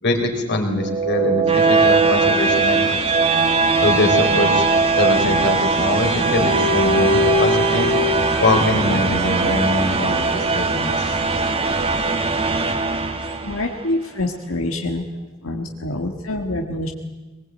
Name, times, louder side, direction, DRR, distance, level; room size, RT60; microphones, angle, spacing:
voice 1, 0.0-3.2 3.8-4.7 4.9-7.9 8.4-11.2, left 2 dB, 55° left, 4 dB, 4.1 m, -23 dB
sound 1, 0.8-13.8, right 4 dB, 30° right, 1.6 m, -20 dB
Bowed string instrument, 6.2-10.7, left 2 dB, 85° right, 7.9 m, -24 dB
voice 2, 13.4-15.0 15.4-16.9, left 2 dB, 90° left, 2 dB, 1.8 m, -26 dB
22.5 x 20.5 x 9.1 m, 1.2 s
head